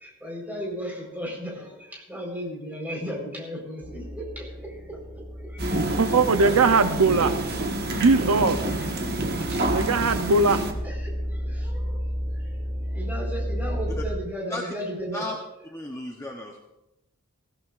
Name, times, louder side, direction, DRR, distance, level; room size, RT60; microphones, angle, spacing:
voice 1, 0.0-1.7 2.1-4.4 7.9-8.1 8.6-8.7 9.5-9.6 10.0-10.1 10.8-11.1 11.6-11.8 12.9-15.2, equal, 10° right, -1 dB, 4.4 m, -34 dB
sound 1, 3.8-14.2, equal, 30° right, 1.3 m, -33 dB
sound 2, 5.6-10.7, right 1 dB, 50° right, 1.4 m, -28 dB
voice 2, 5.9-7.3 7.9-8.6 9.7-10.6, right 3 dB, 80° right, 9 dB, 0.7 m, -20 dB
voice 3, 15.7-16.6, left 1 dB, 15° left, 0 dB, 0.9 m, -34 dB
22.0 x 15.5 x 2.5 m, 0.94 s
head